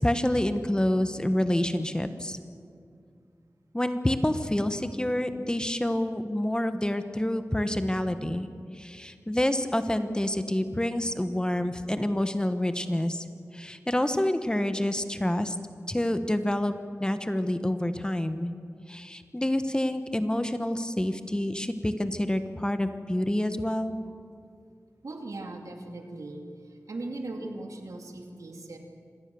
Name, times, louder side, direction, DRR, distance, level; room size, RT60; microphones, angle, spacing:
voice 1, 0.0-2.4 3.7-8.5 8.7-13.3 13.5-15.6 15.9-16.7 17.0-18.5 18.9-23.9, left 1 dB, 15° left, 9 dB, 1.2 m, -27 dB
voice 2, 25.0-26.5 26.9-28.8, right 2 dB, 80° right, 2 dB, 2.5 m, -38 dB
25.5 x 18.0 x 7.0 m, 2.3 s
wide cardioid pair, 70°, 6 cm